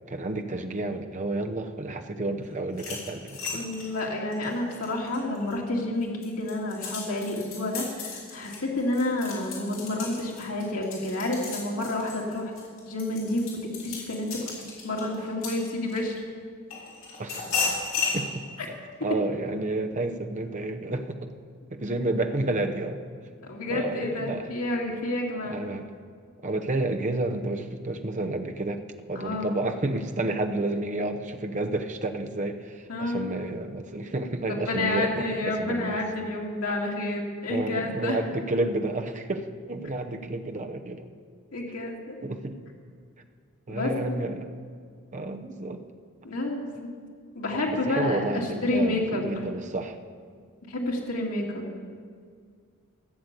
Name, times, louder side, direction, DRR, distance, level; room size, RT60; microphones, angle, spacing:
voice 1, 0.1-3.6 17.2-17.6 18.1-18.5 19.0-21.3 21.7-23.0 23.7-24.6 25.4-25.9 26.4-28.8 29.1-36.0 37.5-41.1 42.2-42.6 43.7-44.5 45.1-45.8 47.7-50.0, right 2 dB, 35° right, 5 dB, 0.7 m, -30 dB
sound 1, 2.7-5.5 6.0-16.2 16.7-18.2, left 5 dB, 65° left, 4.1 m, -34 dB
voice 2, 3.5-12.5 12.9-14.4 14.8-16.2 23.4-25.7 29.1-29.6 32.9-33.3 34.5-38.2 41.5-42.2 43.7-44.2 46.2-46.7 47.3-49.3 50.7-51.7, left 2 dB, 90° left, -2 dB, 2.4 m, -29 dB
14.5 x 6.7 x 8.2 m, 2.1 s
head